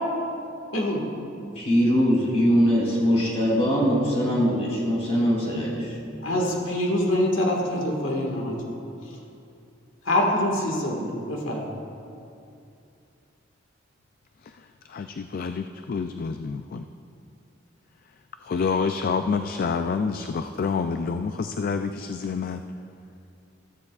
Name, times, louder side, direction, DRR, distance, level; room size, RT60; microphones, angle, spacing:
voice 1, 0.7-1.0 6.2-8.7 9.0-9.2 10.0-11.8, left 1 dB, 90° left, 0 dB, 1.8 m, -25 dB
voice 2, 1.5-6.0, equal, 35° left, -4 dB, 3.0 m, -22 dB
voice 3, 14.9-16.8 18.4-22.6, left 5 dB, 50° left, 8 dB, 0.3 m, -28 dB
14.0 x 14.0 x 2.4 m, 2.6 s
head